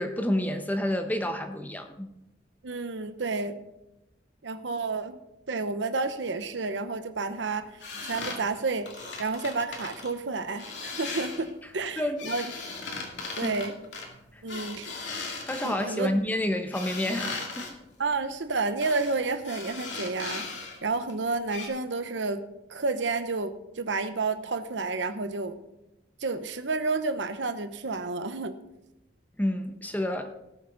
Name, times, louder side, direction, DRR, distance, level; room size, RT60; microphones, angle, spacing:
voice 1, 0.0-2.1 12.0-12.3 13.1-13.5 14.3-14.4 15.5-17.7 29.4-30.3, left 1 dB, 10° left, 6 dB, 0.9 m, -29 dB
voice 2, 2.6-3.6 4.4-5.2 5.5-7.7 8.0-8.9 9.2-12.5 13.4-13.7 14.4-14.9 15.6-16.1 18.0-20.4 20.8-22.4 22.7-25.5 26.2-28.6, right 3 dB, 85° right, 10 dB, 0.9 m, -30 dB
sound 1, 7.8-10.1 10.6-11.5 11.9-16.1 16.7-17.7 18.8-19.2 19.4-20.8 21.1-21.2 21.5-21.7, left 4 dB, 75° left, 2.3 m, -38 dB
18.5 x 7.0 x 4.0 m, 0.92 s
head